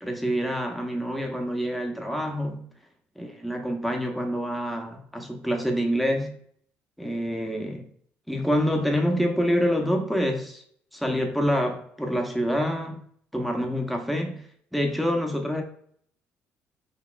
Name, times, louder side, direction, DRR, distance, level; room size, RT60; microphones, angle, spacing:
voice 1, 0.0-2.6 3.2-6.3 7.0-7.9 8.3-10.6 10.9-13.0 13.3-14.5 14.7-15.6, equal, ahead, 2 dB, 0.6 m, -26 dB
4.7 x 4.0 x 2.3 m, 0.62 s
cardioid pair, 155°, 5 cm